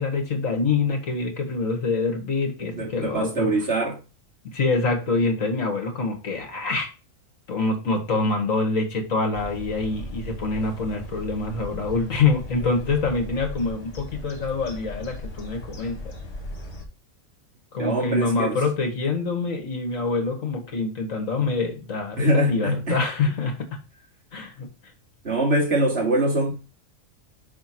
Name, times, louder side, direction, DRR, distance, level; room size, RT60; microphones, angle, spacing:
voice 1, 0.0-3.5 4.5-6.9 7.5-16.1 17.7-23.7 24.3-24.7, left 3 dB, 70° left, 2.3 m, -25 dB
voice 2, 2.7-4.0 17.8-18.6 22.2-23.0 25.2-26.5, right 1 dB, 50° right, 2.9 m, -23 dB
sound 1, 9.3-16.8, left 1 dB, 55° left, 1.8 m, -37 dB
6.3 x 4.7 x 6.1 m
omnidirectional pair, 1.4 m